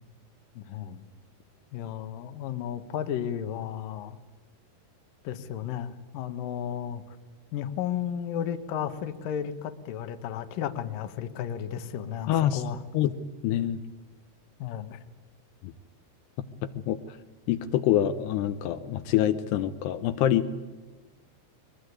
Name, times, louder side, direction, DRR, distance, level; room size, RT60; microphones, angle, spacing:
voice 1, 0.6-1.0 1.7-4.2 5.2-7.0 7.5-12.8 14.6-15.0, left 9 dB, 65° left, 10 dB, 2.7 m, -33 dB
voice 2, 12.3-12.6 12.9-13.1 13.4-13.8 16.9-17.0 17.5-20.6, left 11 dB, 80° left, 9 dB, 2.9 m, -25 dB
22.5 x 22.0 x 9.6 m, 1.3 s
omnidirectional pair, 4.9 m